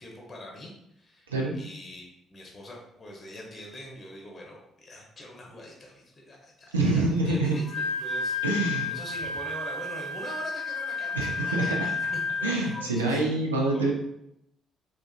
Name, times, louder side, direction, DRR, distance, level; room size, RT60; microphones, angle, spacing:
voice 1, 0.0-8.4 8.7-13.2 13.7-13.9, left 1 dB, 35° left, -1 dB, 0.8 m, -44 dB
voice 2, 6.7-7.6 8.4-8.9 11.1-11.9 12.4-13.9, right 2 dB, 85° right, -1 dB, 0.4 m, -26 dB
Wind instrument woodwind instrument, 7.5-12.8, left 4 dB, 65° left, 0.5 m, -31 dB
3.6 x 2.4 x 2.4 m, 0.79 s
figure-of-eight pair, 45°, 0 cm